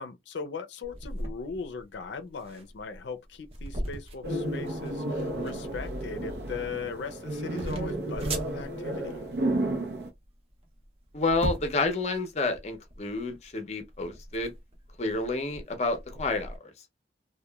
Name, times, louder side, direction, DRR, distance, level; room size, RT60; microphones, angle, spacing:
voice 1, 0.0-9.3, left 5 dB, 85° left, 0.4 m, -39 dB
sound 1, 0.8-16.6, right 1 dB, 35° right, 0.5 m, -40 dB
sound 2, 4.2-10.1, right 1 dB, 75° right, 0.6 m, -32 dB
voice 2, 11.1-14.5 15.0-16.6, left 3 dB, 40° left, 0.5 m, -29 dB
2.8 x 2.2 x 2.2 m
head